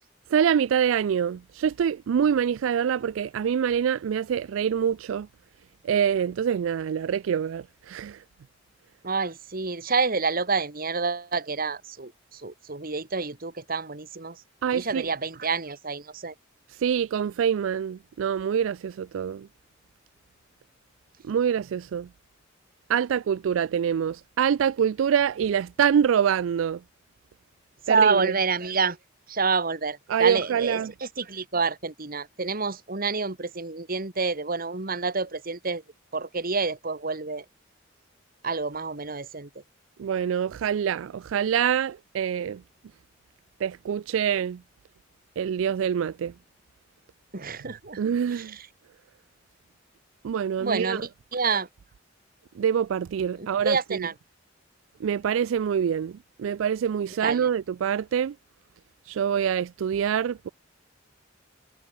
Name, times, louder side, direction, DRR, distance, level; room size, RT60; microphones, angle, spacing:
voice 1, 0.3-5.3 5.8-8.2 14.6-15.1 16.8-19.5 21.2-22.1 22.9-26.8 27.9-28.3 30.1-30.9 40.0-42.6 43.6-44.6 45.4-46.3 48.0-48.5 50.2-51.0 52.6-54.1 55.0-58.3 59.1-60.5, right 8 dB, 85° right, 0.3 m, -25 dB
voice 2, 9.0-14.4 14.7-16.3 27.9-29.0 29.3-35.8 36.1-37.4 38.4-39.5 47.3-48.0 48.3-48.7 50.6-51.7 53.4-54.1 57.2-57.5, right 4 dB, 50° right, 1.9 m, -28 dB
head